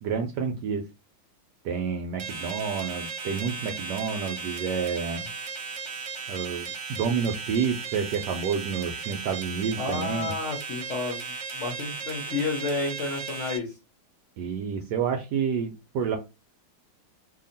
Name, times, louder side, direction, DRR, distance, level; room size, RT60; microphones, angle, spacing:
voice 1, 0.0-0.8 1.6-5.3 6.3-10.3 14.4-16.2, right 6 dB, 75° right, 4 dB, 1.0 m, -29 dB
sound 1, 2.2-13.6, right 5 dB, 50° right, 0.9 m, -36 dB
voice 2, 9.8-13.8, left 3 dB, 50° left, 1 dB, 0.9 m, -31 dB
2.9 x 2.7 x 3.9 m, 0.26 s
omnidirectional pair, 2.2 m